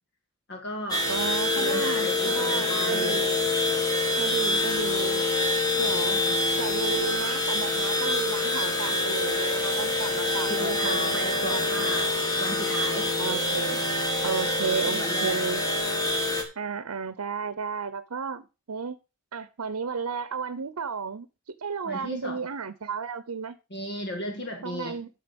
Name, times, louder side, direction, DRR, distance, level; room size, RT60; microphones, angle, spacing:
voice 1, 0.5-1.1 1.5-3.2 5.8-6.5 10.5-12.1 12.4-13.2 14.8-15.4 21.9-22.4 23.7-25.0, left 1 dB, 50° left, 1.7 m, -35 dB
sound 1, 0.9-16.4, left 2 dB, 15° left, 1.7 m, -26 dB
voice 2, 1.1-3.4 4.2-5.3 5.8-6.2 6.5-11.9 13.2-13.9 14.2-15.6 16.6-19.0 19.3-21.3 21.6-23.6 24.6-25.1, right 5 dB, 90° right, 0.7 m, -33 dB
9.8 x 6.4 x 5.2 m
head